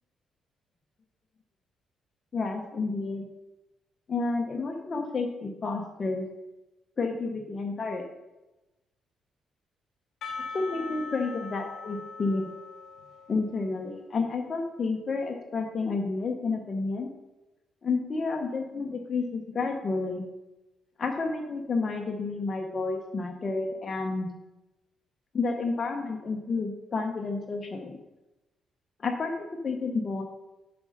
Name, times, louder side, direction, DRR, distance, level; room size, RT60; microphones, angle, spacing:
voice 1, 2.3-3.3 4.1-6.2 7.0-8.1 10.5-12.5 13.3-17.1 17.8-20.2 21.0-24.3 25.3-28.0 29.0-30.2, left 3 dB, 40° left, 1 dB, 1.0 m, -30 dB
Percussion, 10.2-14.1, left 4 dB, 70° left, 1.3 m, -41 dB
8.1 x 5.2 x 5.1 m, 1.0 s
cardioid pair, 90°, 0 cm